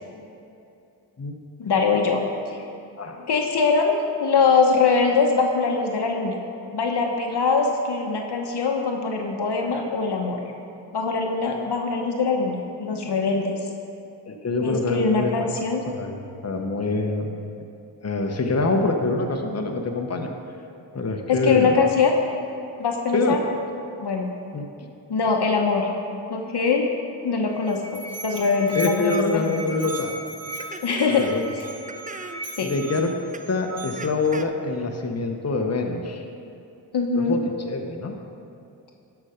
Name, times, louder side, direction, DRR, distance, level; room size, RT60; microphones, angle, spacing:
voice 1, 1.6-2.6 3.3-6.4 6.7-10.4 10.9-13.6 14.6-15.8 21.3-22.1 22.8-23.4 24.0-24.3 25.1-25.9 26.3-26.9 27.2-29.6 30.8-31.3 32.6-32.7 36.9-37.4, left 4 dB, 60° left, 2 dB, 1.2 m, -22 dB
voice 2, 14.3-15.3 15.9-16.2 16.4-17.3 18.0-20.3 20.9-21.7 23.1-23.4 24.5-24.9 28.7-30.1 31.2-31.4 32.6-33.1 33.5-36.3 37.2-38.2, left 3 dB, 35° left, 3 dB, 1.2 m, -25 dB
Musical instrument, 27.4-34.3, right 3 dB, 30° right, 1.3 m, -37 dB
sound 1, 29.1-29.2 29.6-29.8 30.6-31.5 31.9-32.5 33.3-33.4 34.0-34.4, right 3 dB, 15° right, 0.6 m, -37 dB
12.0 x 5.9 x 5.1 m, 2.6 s
supercardioid pair, 45°, 46 cm